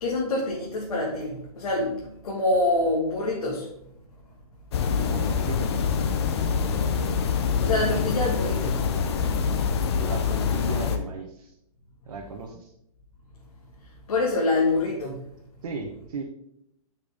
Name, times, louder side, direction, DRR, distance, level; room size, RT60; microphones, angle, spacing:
voice 1, 0.0-3.7 7.6-8.8 14.1-15.2, left 2 dB, 70° left, -2 dB, 2.0 m, -26 dB
Ambience Mountain Outdoor Muntanya Forat del Vent Torrebaro, 4.7-11.0, left 6 dB, 45° left, 0.8 m, -25 dB
voice 2, 5.0-5.8 6.5-7.2 9.9-11.5 12.1-12.7 15.6-16.2, right 3 dB, 60° right, 1 dB, 1.2 m, -36 dB
9.0 x 5.8 x 3.6 m, 0.78 s
hypercardioid pair, 165°, 19 cm